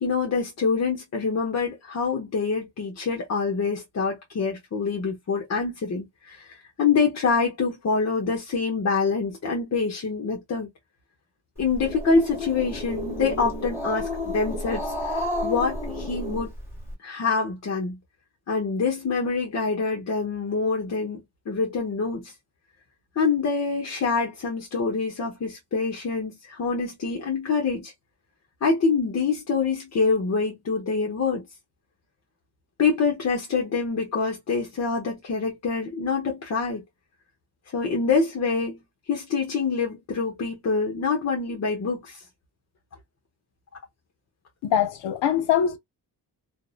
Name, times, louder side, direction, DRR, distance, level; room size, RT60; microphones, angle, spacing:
voice 1, 0.0-10.7 11.6-16.5 17.0-18.0 18.5-22.3 23.2-27.9 28.6-31.5 32.8-36.8 37.7-38.8 39.1-42.2, left 4 dB, 40° left, 0.8 m, -26 dB
Growling, 11.6-16.9, left 1 dB, 5° right, 1.3 m, -31 dB
voice 2, 44.6-45.8, left 9 dB, 75° left, 0.7 m, -23 dB
2.6 x 2.0 x 2.3 m
cardioid pair, 120°, 43 cm